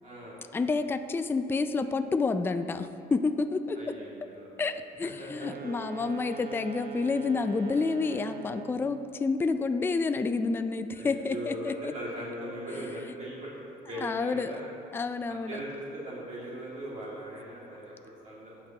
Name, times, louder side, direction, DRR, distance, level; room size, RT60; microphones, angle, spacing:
voice 1, 0.0-0.4 3.8-4.6 5.2-5.5 10.9-13.5 13.9-14.7 15.5-18.6, right 1 dB, 45° right, -7 dB, 2.3 m, -39 dB
voice 2, 0.5-4.0 4.6-11.9 14.0-14.6 14.9-15.6, left 4 dB, 15° left, 9 dB, 0.3 m, -29 dB
sound 1, 5.3-9.0, right 7 dB, 60° right, 0.8 m, -43 dB
17.0 x 5.9 x 2.9 m, 2.7 s
cardioid pair, 110°, 17 cm